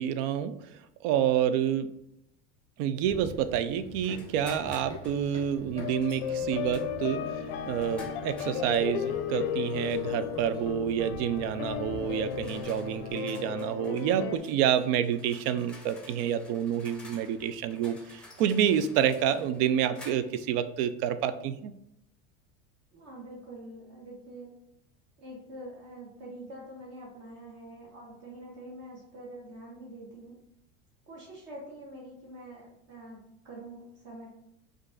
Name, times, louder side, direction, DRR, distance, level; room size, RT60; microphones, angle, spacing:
voice 1, 0.0-1.9 2.8-7.2 7.7-21.7, right 9 dB, 65° right, 12 dB, 0.5 m, -28 dB
Run, 3.1-13.1, left 1 dB, 20° right, 1.2 m, -47 dB
sound 1, 4.0-5.2 6.0-6.3 6.7-8.9 9.7-10.3 11.3-11.5 12.1-20.5, left 1 dB, 5° left, 0.6 m, -52 dB
sound 2, 5.8-14.4, left 8 dB, 70° left, 0.5 m, -35 dB
voice 2, 22.9-24.6 25.2-30.4 31.1-34.3, right 1 dB, 50° right, -4 dB, 1.3 m, -45 dB
5.1 x 2.5 x 3.8 m, 0.77 s
supercardioid pair, 135°, 31 cm